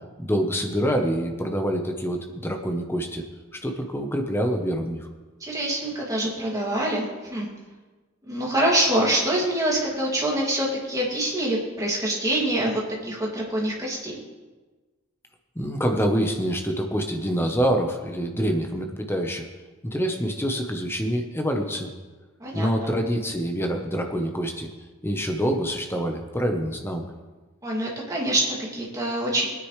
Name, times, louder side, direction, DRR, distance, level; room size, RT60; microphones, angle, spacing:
voice 1, 0.2-3.2 3.6-5.0 15.6-19.5 19.8-21.9 22.5-24.7 25.0-27.0, equal, 10° left, 4 dB, 1.0 m, -26 dB
voice 2, 5.4-7.5 8.3-14.2 22.4-22.9 27.6-29.5, right 1 dB, 15° right, -4 dB, 2.5 m, -25 dB
21.0 x 9.7 x 3.3 m, 1.3 s
head